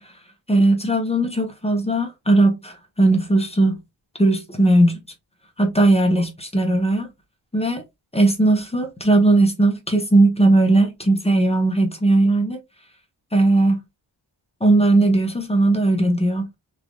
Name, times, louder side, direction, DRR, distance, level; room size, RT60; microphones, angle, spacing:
voice 1, 0.5-3.8 4.2-5.0 5.6-7.1 7.5-7.8 8.1-12.6 13.3-13.8 14.6-16.5, right 2 dB, 15° left, 0.7 m, -18 dB
3.2 x 2.4 x 2.2 m
wide cardioid pair, 95°, 47 cm